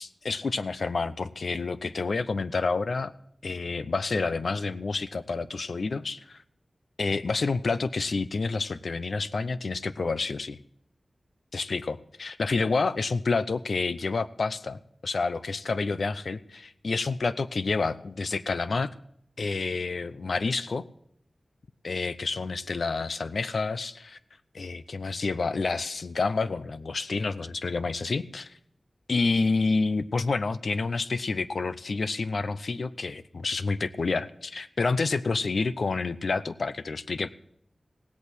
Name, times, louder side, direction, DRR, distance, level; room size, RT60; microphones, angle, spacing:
voice 1, 0.0-3.1 3.4-6.4 7.0-10.6 11.5-18.9 19.4-20.8 21.8-24.2 24.5-28.5 29.1-37.3, left 4 dB, 75° left, 14 dB, 0.6 m, -29 dB
17.0 x 8.4 x 6.1 m, 0.70 s
wide cardioid pair, 85°, 0 cm